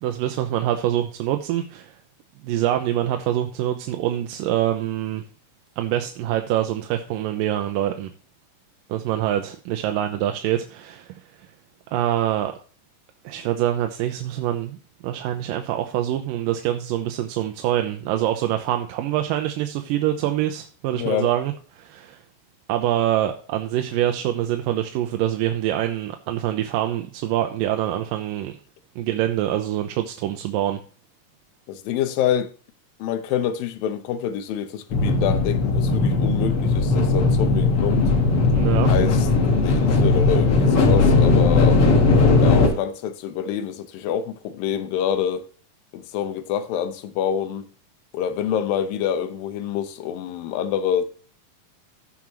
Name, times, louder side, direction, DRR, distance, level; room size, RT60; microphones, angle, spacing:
voice 1, 0.0-1.9 2.4-5.2 5.8-8.1 8.9-11.5 11.9-12.5 13.2-14.8 15.0-22.2 22.7-28.6 29.0-30.8 38.5-38.9, right 12 dB, 85° right, 2.4 m, -25 dB
voice 2, 20.9-21.3 31.7-32.5 33.0-38.1 38.9-39.3 39.5-41.8 42.4-45.5 45.9-47.7 48.1-51.0, left 9 dB, 90° left, 2.7 m, -26 dB
sound 1, 34.9-42.7, left 3 dB, 50° left, 2.0 m, -18 dB
15.5 x 6.2 x 3.0 m
omnidirectional pair, 4.0 m